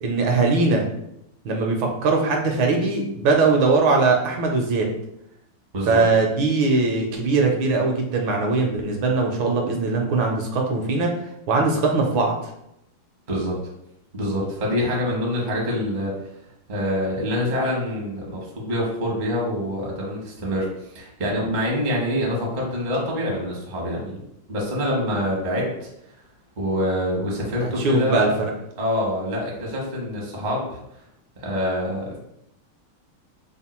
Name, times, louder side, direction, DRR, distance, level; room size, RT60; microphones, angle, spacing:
voice 1, 0.0-0.8 1.4-4.9 5.9-11.1 11.5-12.3 27.6-28.5, right 3 dB, 75° right, 1 dB, 1.4 m, -21 dB
voice 2, 14.1-16.1 16.7-24.2 24.5-25.9 26.6-28.2 28.8-30.8 31.4-32.2, equal, 45° right, -2 dB, 0.6 m, -25 dB
3.6 x 2.2 x 4.2 m, 0.80 s
omnidirectional pair, 2.3 m